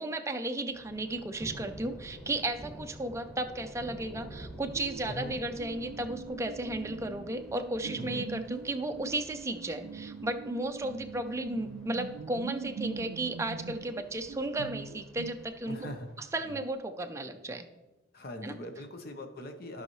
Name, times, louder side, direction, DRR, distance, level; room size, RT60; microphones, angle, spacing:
voice 1, 0.0-15.8 16.2-17.7 18.4-18.6, right 2 dB, 15° right, 6 dB, 0.4 m, -34 dB
Thunder, 0.7-16.6, right 1 dB, 5° left, 1.3 m, -50 dB
sound 1, 4.7-5.3 5.6-16.1 16.4-16.7, right 5 dB, 80° right, 0.4 m, -43 dB
voice 2, 5.1-5.4 8.0-8.3 15.7-16.1 18.1-19.8, left 1 dB, 50° left, 5 dB, 0.9 m, -41 dB
14.5 x 5.5 x 3.1 m, 1.1 s
head